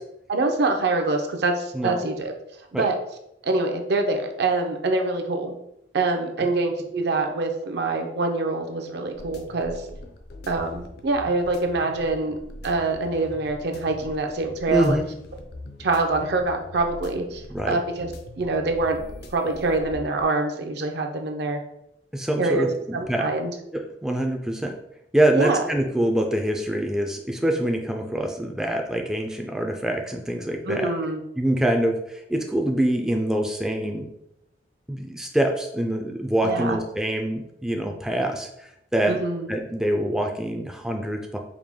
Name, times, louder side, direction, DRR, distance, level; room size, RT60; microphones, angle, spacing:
voice 1, 0.3-2.3 2.7-3.0 3.4-5.5 5.9-9.8 10.5-12.4 12.6-15.0 15.8-18.1 18.4-19.0 19.3-21.6 22.4-22.6 22.9-23.5 25.4-25.6 30.7-31.2 36.4-36.8 39.1-39.5, right 3 dB, 65° right, 4 dB, 0.6 m, -25 dB
sound 1, 9.1-20.2, left 2 dB, 60° left, 0.5 m, -42 dB
voice 2, 14.7-15.0 17.5-17.8 22.1-23.2 23.7-24.8 25.1-30.9 31.4-34.1 34.9-38.5 38.9-39.2 39.5-41.4, right 1 dB, 5° right, 2 dB, 0.3 m, -25 dB
4.8 x 2.2 x 3.5 m, 0.82 s
head